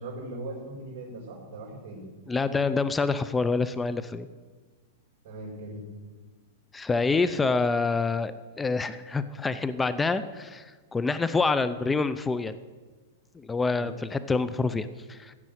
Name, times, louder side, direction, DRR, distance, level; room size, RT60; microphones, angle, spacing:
voice 1, 0.0-2.0 5.2-5.8 13.7-13.9, right 2 dB, 50° right, -7 dB, 5.5 m, -39 dB
voice 2, 2.3-4.3 6.7-12.6 13.3-15.3, left 4 dB, 10° left, 13 dB, 0.5 m, -27 dB
16.0 x 7.5 x 9.3 m, 1.4 s
hypercardioid pair, 145°, 0 cm